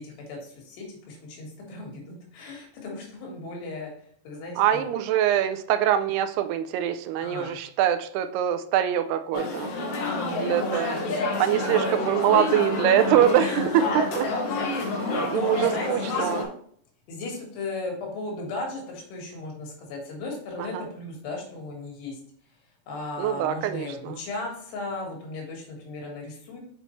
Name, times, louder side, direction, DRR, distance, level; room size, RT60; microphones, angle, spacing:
voice 1, 0.0-3.9 4.3-4.9 7.2-7.6 10.1-11.1 13.4-13.9 15.1-16.4 17.1-22.2 22.9-26.6, left 2 dB, 90° left, 0 dB, 3.8 m, -36 dB
voice 2, 4.6-9.8 10.4-11.0 11.4-13.8 14.2-14.3 14.9-16.4 20.6-20.8 23.2-24.2, right 10 dB, 85° right, 9 dB, 2.5 m, -24 dB
sound 1, 9.3-16.4, left 3 dB, 65° left, 2.6 m, -28 dB
6.9 x 5.3 x 3.1 m, 0.62 s
omnidirectional pair, 4.7 m